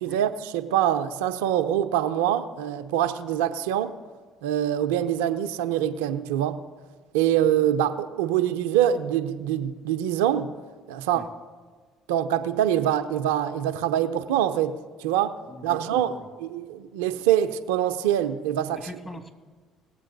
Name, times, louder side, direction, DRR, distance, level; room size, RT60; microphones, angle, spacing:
voice 1, 0.0-3.9 4.4-6.6 7.1-10.5 10.9-11.3 12.1-15.4 15.6-18.9, right 10 dB, 80° right, 9 dB, 0.5 m, -24 dB
voice 2, 15.5-16.3 18.7-19.3, left 1 dB, 20° left, 5 dB, 1.9 m, -42 dB
19.0 x 7.5 x 3.9 m, 1.5 s
hypercardioid pair, 60°, 0 cm